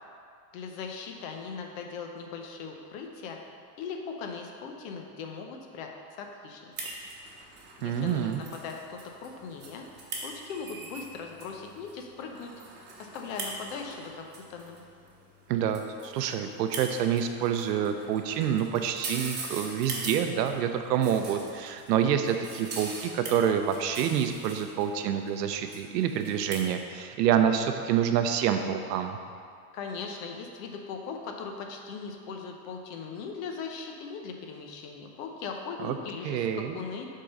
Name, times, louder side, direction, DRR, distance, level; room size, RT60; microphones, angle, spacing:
voice 1, 0.5-3.4 3.8-6.7 7.8-9.9 10.2-12.5 13.0-14.8 29.7-37.1, left 5 dB, 55° left, 3 dB, 1.0 m, -39 dB
sound 1, 6.7-26.6, right 3 dB, 20° right, 1.1 m, -42 dB
voice 2, 7.8-8.4 15.5-29.2 35.8-36.0 36.2-36.8, right 9 dB, 90° right, 7 dB, 0.8 m, -27 dB
7.6 x 3.8 x 5.3 m, 2.3 s
supercardioid pair, 150°, 48 cm